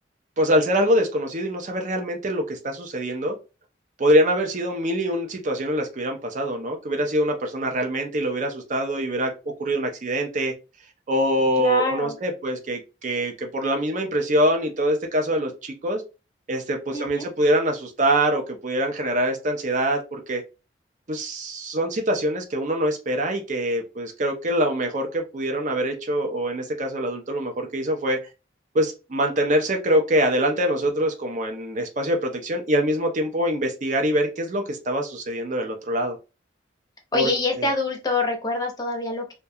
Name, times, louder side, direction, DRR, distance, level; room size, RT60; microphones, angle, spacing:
voice 1, 0.4-3.4 4.0-10.5 11.1-16.0 16.5-20.4 21.1-28.2 28.7-36.2 37.1-37.3 37.6-37.7, right 1 dB, 40° right, 0.5 m, -24 dB
voice 2, 11.6-12.1 16.9-17.3 37.1-39.3, left 3 dB, 20° left, 0.6 m, -25 dB
2.3 x 2.1 x 2.7 m
head